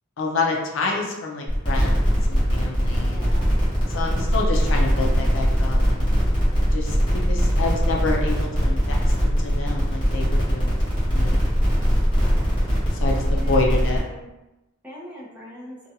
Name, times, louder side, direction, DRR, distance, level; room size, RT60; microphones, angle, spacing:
voice 1, 0.2-3.2 3.9-6.1 6.7-7.0 7.3-10.7 11.0-11.4 13.0-14.0, left 3 dB, 65° left, -1 dB, 0.5 m, -28 dB
sound 1, 1.5-14.0, equal, 25° left, 1.0 m, -21 dB
voice 2, 3.0-3.5 12.2-12.7 13.1-14.3 14.8-15.8, left 1 dB, 10° right, -6 dB, 0.6 m, -41 dB
2.5 x 2.2 x 2.7 m, 1.0 s
head